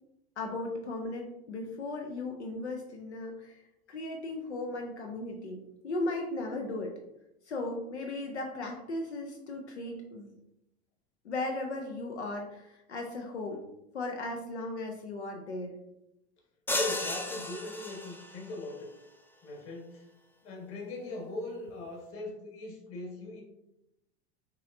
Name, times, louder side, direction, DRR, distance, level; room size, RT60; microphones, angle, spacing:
voice 1, 0.4-6.9 7.4-10.3 11.2-13.6 13.9-15.7, left 2 dB, 90° left, 2 dB, 0.6 m, -37 dB
voice 2, 16.7-18.9 19.4-20.0 20.4-23.4, left 2 dB, 40° left, 0 dB, 1.6 m, -40 dB
sound 1, 16.7-18.5, left 1 dB, 5° left, 0.4 m, -34 dB
5.4 x 3.0 x 2.6 m, 0.88 s
hypercardioid pair, 80°, 33 cm